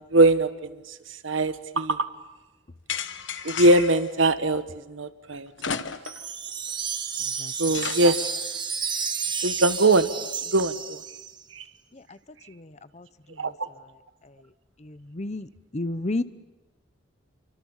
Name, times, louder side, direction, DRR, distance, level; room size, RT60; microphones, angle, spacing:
voice 1, 0.1-0.7 1.2-2.1 3.4-4.6 4.9-5.8 7.6-8.3 9.4-10.1 10.5-11.0 11.5-11.6 13.4-13.5, right 2 dB, 85° right, 11 dB, 1.5 m, -21 dB
sound 1, 2.9-4.1 5.6-6.3 6.7-6.8 7.7-8.6, left 7 dB, 70° left, 1.1 m, -33 dB
Wind chime, 6.0-11.4, right 6 dB, 25° right, 1.6 m, -31 dB
voice 2, 12.5-13.1 13.4-13.5 14.8-16.2, left 2 dB, 35° left, 15 dB, 0.8 m, -32 dB
29.5 x 24.5 x 7.3 m, 1.1 s
head